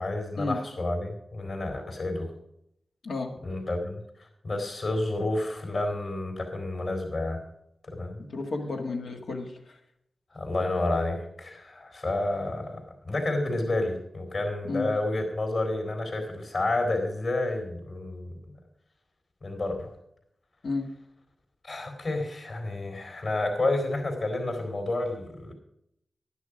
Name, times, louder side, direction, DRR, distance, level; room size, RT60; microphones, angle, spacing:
voice 1, 0.0-2.3 3.4-7.4 7.8-8.2 10.3-18.6 19.4-19.9 21.6-25.5, left 2 dB, 55° left, 3 dB, 3.8 m, -30 dB
voice 2, 3.0-3.3 8.2-9.8 14.6-14.9 20.6-20.9, left 3 dB, 80° left, 2 dB, 1.7 m, -32 dB
11.5 x 10.5 x 5.0 m, 0.78 s
wide cardioid pair, 105°, 0 cm